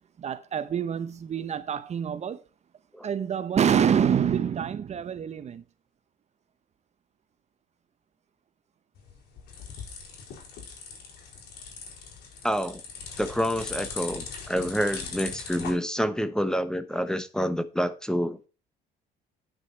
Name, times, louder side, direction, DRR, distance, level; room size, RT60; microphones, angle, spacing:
voice 1, 0.2-2.4 3.0-5.6, right 8 dB, 40° right, 0.8 m, -26 dB
sound 1, 9.0-15.7, left 5 dB, 70° left, 4.8 m, -40 dB
voice 2, 12.4-12.8 13.2-18.5, equal, 5° left, 0.9 m, -28 dB
9.8 x 6.4 x 4.4 m
cardioid pair, 110°, 17 cm